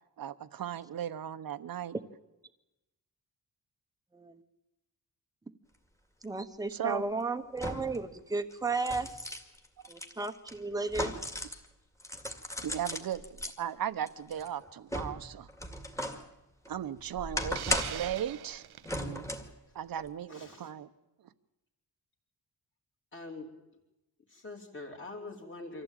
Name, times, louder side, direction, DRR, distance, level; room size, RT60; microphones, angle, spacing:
voice 1, 0.2-1.9 6.7-7.0 12.6-15.5 16.7-18.6 19.0-19.2 19.7-20.9, right 10 dB, 65° right, 13 dB, 1.1 m, -36 dB
sound 1, 6.2-6.3 7.6-8.1 8.5-11.7 12.0-13.5 14.1-16.3 16.7-18.1 18.8-19.6 20.0-20.1, left 1 dB, 10° left, 2.1 m, -37 dB
voice 2, 6.2-9.3 9.9-11.1, right 3 dB, 10° right, 8 dB, 1.1 m, -34 dB
Hiss, 17.5-18.9, right 12 dB, 80° right, 0.7 m, -41 dB
voice 3, 20.3-20.7 23.1-23.6 24.3-25.8, left 2 dB, 30° left, -1 dB, 3.1 m, -44 dB
25.0 x 15.5 x 9.0 m, 0.97 s
wide cardioid pair, 170°, 38 cm